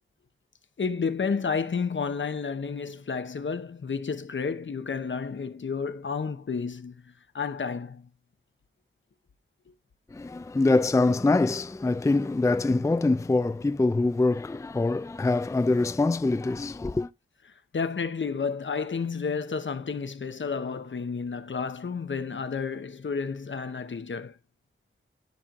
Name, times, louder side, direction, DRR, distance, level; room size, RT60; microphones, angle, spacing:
voice 1, 0.8-7.0 7.3-8.1 17.7-24.4, left 5 dB, 65° left, 0.9 m, -31 dB
voice 2, 10.1-17.1, left 2 dB, 15° left, 0.4 m, -24 dB
13.0 x 4.4 x 2.4 m
wide cardioid pair, 90°, 21 cm